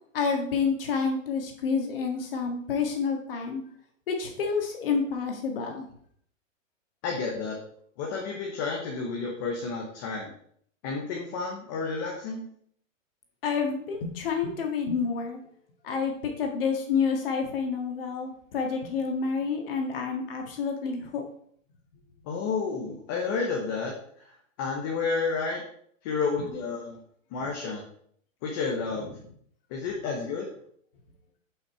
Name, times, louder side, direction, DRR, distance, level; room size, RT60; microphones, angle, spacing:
voice 1, 0.1-3.6 4.1-5.9 13.4-15.4 15.8-21.2 27.4-27.5, left 5 dB, 45° left, 2 dB, 1.9 m, -29 dB
voice 2, 7.0-7.6 8.0-10.3 10.8-12.5 22.3-23.9 24.6-25.6 26.0-27.0 27.3-27.8 28.4-29.1 29.7-30.5, left 4 dB, 15° left, -1 dB, 0.8 m, -30 dB
9.3 x 5.7 x 4.3 m, 0.63 s
hypercardioid pair, 170°, 40 cm